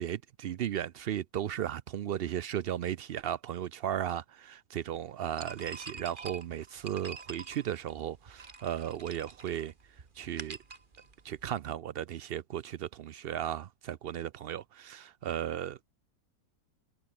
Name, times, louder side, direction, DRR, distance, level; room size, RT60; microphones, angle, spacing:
voice 1, 0.0-9.7 10.2-10.6 11.2-15.8, right 10 dB, 90° right, 0.5 m, -35 dB
sound 1, 5.4-11.6, right 4 dB, 35° right, 1.7 m, -47 dB
omnidirectional pair, 1.7 m